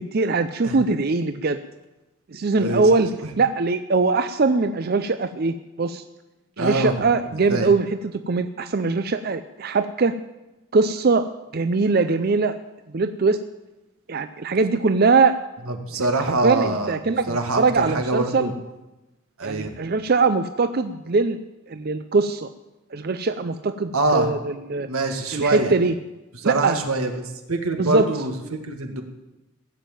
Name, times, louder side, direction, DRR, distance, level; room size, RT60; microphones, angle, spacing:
voice 1, 0.0-1.6 2.3-3.1 3.4-6.0 6.6-7.9 8.3-10.2 10.7-11.3 11.5-12.5 12.9-13.4 14.1-15.4 16.2-18.5 19.4-21.4 21.7-22.5 22.9-24.9 25.3-25.9 26.4-26.8 27.8-28.1, right 4 dB, 45° right, 10 dB, 0.5 m, -21 dB
voice 2, 2.5-2.9 3.2-3.3 6.6-7.0 7.5-7.7 15.7-17.0 17.3-18.5 19.4-19.8 23.9-24.3 24.9-25.7 26.3-29.0, right 2 dB, 90° right, 5 dB, 1.9 m, -25 dB
16.0 x 7.3 x 9.0 m, 1.0 s
head